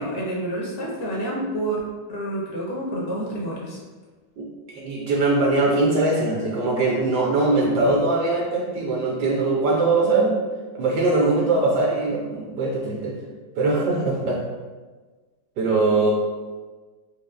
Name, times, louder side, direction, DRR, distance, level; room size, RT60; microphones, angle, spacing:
voice 1, 0.0-1.8 2.1-3.8 7.8-7.9, right 1 dB, 65° left, -4 dB, 1.1 m, -28 dB
voice 2, 4.4-10.3 10.7-13.1 13.6-14.4 15.6-16.1, right 2 dB, 70° right, -2 dB, 1.0 m, -21 dB
4.7 x 2.3 x 2.4 m, 1.3 s
omnidirectional pair, 2.0 m